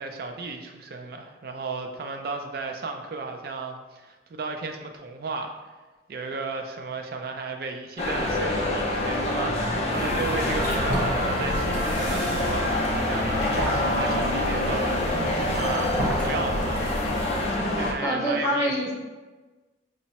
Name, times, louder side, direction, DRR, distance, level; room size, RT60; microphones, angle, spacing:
voice 1, 0.0-5.5 6.1-18.7, right 4 dB, 55° right, 4 dB, 0.4 m, -34 dB
sound 1, 8.0-17.9, left 1 dB, 35° left, 0.4 m, -26 dB
sound 2, 9.9-17.6, equal, 85° right, 0.9 m, -32 dB
voice 2, 17.8-18.9, equal, 15° left, -7 dB, 0.9 m, -26 dB
5.2 x 2.0 x 2.8 m, 1.2 s
head